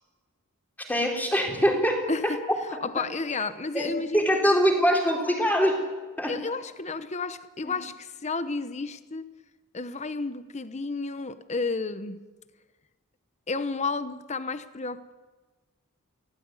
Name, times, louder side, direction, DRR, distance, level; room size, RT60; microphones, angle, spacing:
voice 1, 0.9-2.0 3.0-3.1 3.3-3.4 3.7-5.8 6.2-6.4 7.6-7.8, equal, 10° left, 2 dB, 4.2 m, -23 dB
voice 2, 2.8-4.3 6.3-9.2 9.7-12.2 13.5-15.1, left 3 dB, 30° left, 12 dB, 0.9 m, -32 dB
24.0 x 17.0 x 9.6 m, 1.3 s
head